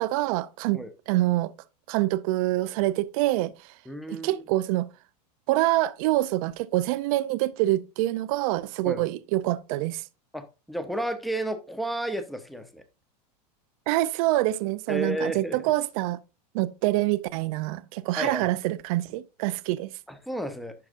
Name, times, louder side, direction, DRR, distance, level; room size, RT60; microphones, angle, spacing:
voice 1, 0.0-1.5 1.9-3.5 4.1-4.9 5.5-10.0 13.9-16.2 16.5-19.9, right 16 dB, 60° right, 0.5 m, -26 dB
voice 2, 3.9-4.4 8.8-9.1 10.3-12.8 14.9-15.6 18.2-18.5 20.1-20.7, right 1 dB, ahead, 0.8 m, -32 dB
11.5 x 4.8 x 2.5 m
supercardioid pair, 135°, 21 cm